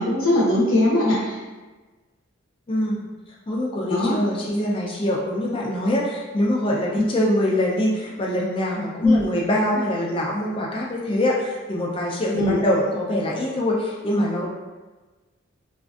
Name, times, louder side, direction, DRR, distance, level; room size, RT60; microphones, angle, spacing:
voice 1, 0.0-1.4 3.9-4.2 9.0-9.2 12.3-12.6, left 1 dB, 85° left, -5 dB, 0.6 m, -20 dB
voice 2, 2.7-3.1 3.5-14.5, left 1 dB, 25° left, -3 dB, 0.3 m, -24 dB
2.5 x 2.3 x 2.3 m, 1.3 s
head